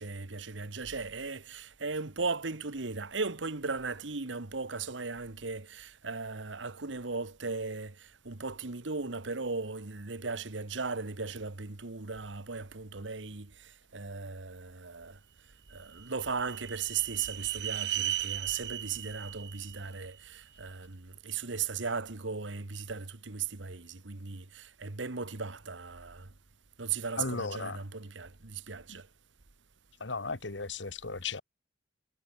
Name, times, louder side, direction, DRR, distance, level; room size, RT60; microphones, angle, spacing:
voice 1, 0.0-15.2 15.7-26.3 26.8-29.1, right 4 dB, 90° right, 1.5 m, -37 dB
sound 1, 15.5-20.7, right 11 dB, 65° right, 1.2 m, -37 dB
voice 2, 27.2-27.8 28.9-29.0 30.0-31.4, left 4 dB, 80° left, 1.8 m, -36 dB
head